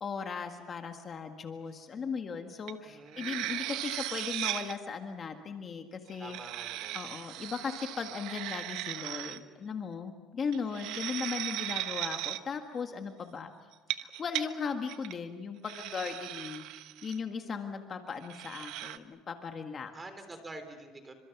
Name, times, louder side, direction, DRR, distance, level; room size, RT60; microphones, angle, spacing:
voice 1, 0.0-6.4 6.9-13.5 14.0-19.9, left 5 dB, 30° left, 5 dB, 1.7 m, -37 dB
sound 1, 2.7-2.8 3.1-4.8 6.1-9.4 10.5-12.4 13.7-14.4 14.9-15.1 15.6-17.2 18.2-19.0, right 14 dB, 70° right, 1.1 m, -37 dB
voice 2, 2.8-3.5 6.2-7.0 19.9-21.1, right 2 dB, 15° right, 8 dB, 3.5 m, -47 dB
29.5 x 25.5 x 6.0 m, 1.3 s
cardioid pair, 135°, 0 cm